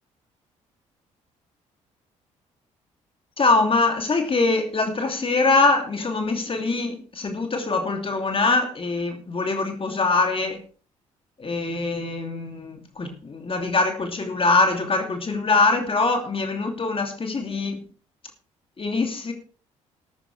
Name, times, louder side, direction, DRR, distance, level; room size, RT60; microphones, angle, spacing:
voice 1, 3.4-10.6 11.4-17.8 18.8-19.3, left 3 dB, 35° left, 4 dB, 2.7 m, -23 dB
13.5 x 13.0 x 3.4 m, 0.40 s
hypercardioid pair, 45°, 17 cm